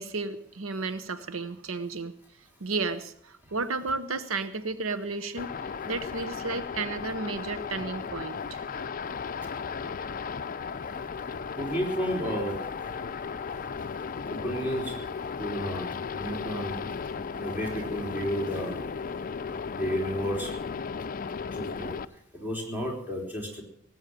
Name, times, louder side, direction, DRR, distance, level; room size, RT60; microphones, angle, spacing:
voice 1, 0.0-2.1 2.6-8.7, right 3 dB, 75° right, 12 dB, 0.8 m, -33 dB
sound 1, 5.4-22.0, left 5 dB, 40° left, 0.5 m, -35 dB
voice 2, 11.6-12.6 14.3-15.0 15.4-16.8 17.3-18.8 19.7-20.6 21.5-21.9 22.3-23.6, equal, 10° right, -1 dB, 4.0 m, -32 dB
18.0 x 8.1 x 8.9 m, 0.67 s
head